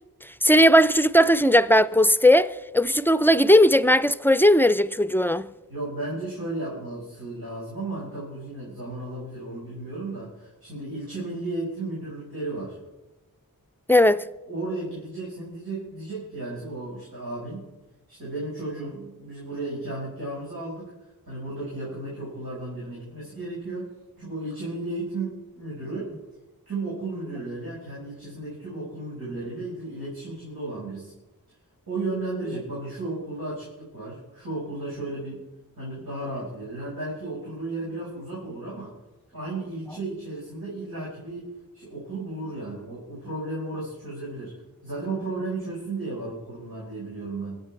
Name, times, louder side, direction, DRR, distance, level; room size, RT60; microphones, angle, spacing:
voice 1, 0.4-5.5 13.9-14.2, equal, 5° left, 0.4 m, -18 dB
voice 2, 5.7-12.8 14.5-17.7 18.1-20.9 21.3-23.9 24.2-26.1 26.7-31.1 31.9-35.4 35.8-38.9 39.3-47.6, right 2 dB, 85° right, 5.8 m, -34 dB
24.0 x 8.4 x 4.7 m
wide cardioid pair, 50°, 35 cm